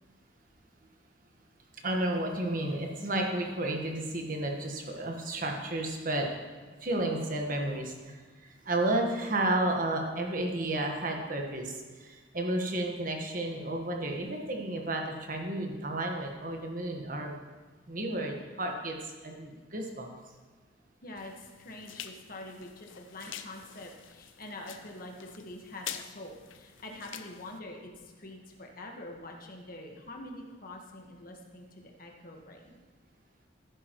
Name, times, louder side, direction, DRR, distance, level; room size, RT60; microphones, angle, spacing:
voice 1, 1.8-6.3 6.8-17.4 17.9-20.1, right 1 dB, 45° right, 1 dB, 1.4 m, -32 dB
voice 2, 21.0-32.8, left 1 dB, 45° left, 1 dB, 1.5 m, -45 dB
sound 1, 21.2-27.6, left 9 dB, 85° left, 0.6 m, -46 dB
15.0 x 9.8 x 3.1 m, 1.4 s
head